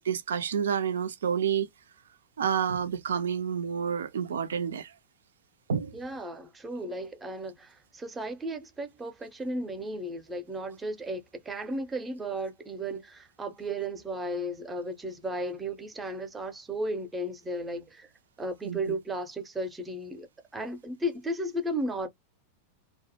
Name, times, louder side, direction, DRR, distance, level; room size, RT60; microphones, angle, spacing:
voice 1, 0.0-1.7 2.4-4.9 5.7-5.9 18.6-18.8, right 7 dB, 65° right, 0.4 m, -29 dB
voice 2, 5.9-18.1 18.4-20.3 20.5-22.1, right 1 dB, 15° right, 0.6 m, -34 dB
2.3 x 2.1 x 2.7 m
figure-of-eight pair, 90°, 0 cm